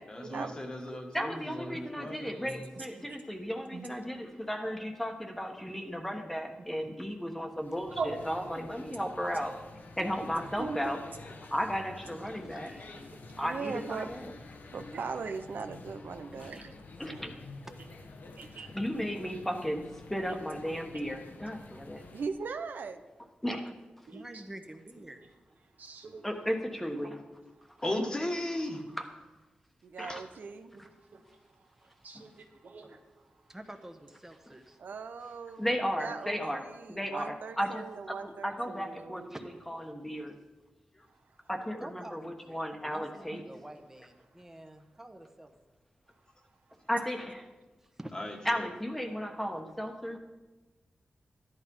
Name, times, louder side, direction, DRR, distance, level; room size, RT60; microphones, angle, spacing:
voice 1, 0.1-2.7 27.8-28.8 30.1-30.2 40.9-41.0 48.1-48.6, left 1 dB, 25° left, 3 dB, 1.5 m, -36 dB
voice 2, 1.1-9.5 10.0-11.0 11.5-12.7 13.4-14.3 17.0-17.3 18.7-19.8 20.1-22.0 23.4-23.7 26.2-27.2 29.0-29.1 30.0-30.2 30.8-30.9 32.1-32.2 35.6-37.8 38.2-39.2 39.7-40.3 41.5-43.4 46.9-47.5 48.4-50.2, equal, 5° left, 4 dB, 1.3 m, -34 dB
sound 1, 7.5-22.3, left 3 dB, 70° left, 1.3 m, -49 dB
voice 3, 10.6-11.0 14.9-15.0 18.4-18.7 20.6-20.8 24.1-24.2 25.8-26.4 30.7-30.8 31.1-31.2 31.8-33.0 43.0-43.4, right 4 dB, 65° right, 3 dB, 1.5 m, -41 dB
voice 4, 12.3-12.9 16.4-16.7 24.1-25.5 33.5-34.8 39.3-39.4 41.8-45.5 47.8-48.1, right 1 dB, 10° right, 6 dB, 1.1 m, -48 dB
voice 5, 13.4-14.4 14.7-16.7 17.1-17.2 22.1-23.0 29.8-30.7 34.8-35.7 36.0-39.3, right 5 dB, 80° right, 8 dB, 0.7 m, -39 dB
13.5 x 11.0 x 5.5 m, 1.2 s
wide cardioid pair, 125°, 3 cm